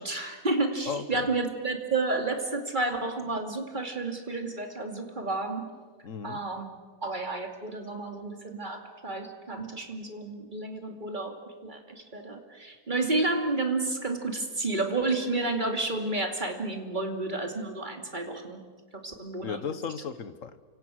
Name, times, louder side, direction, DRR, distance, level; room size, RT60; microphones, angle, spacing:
voice 1, 0.0-5.7 6.2-6.7 7.0-18.6 18.9-19.6, right 2 dB, 30° right, 4 dB, 2.7 m, -31 dB
voice 2, 0.8-1.3 6.0-6.4 19.4-20.6, left 6 dB, 60° left, 12 dB, 1.6 m, -35 dB
29.0 x 25.5 x 6.5 m, 1.5 s
omnidirectional pair, 1.6 m